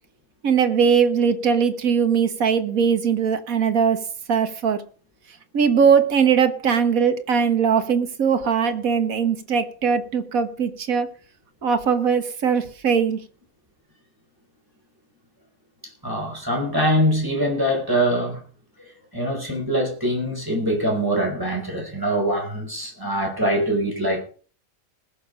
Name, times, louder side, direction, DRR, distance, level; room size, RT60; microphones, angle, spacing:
voice 1, 0.4-4.0 4.3-4.8 5.5-11.1 11.6-13.2, right 6 dB, 80° right, 9 dB, 1.8 m, -20 dB
voice 2, 16.0-18.4 19.1-24.2, equal, 15° right, 0 dB, 4.9 m, -23 dB
20.0 x 6.8 x 5.1 m, 0.41 s
omnidirectional pair, 1.4 m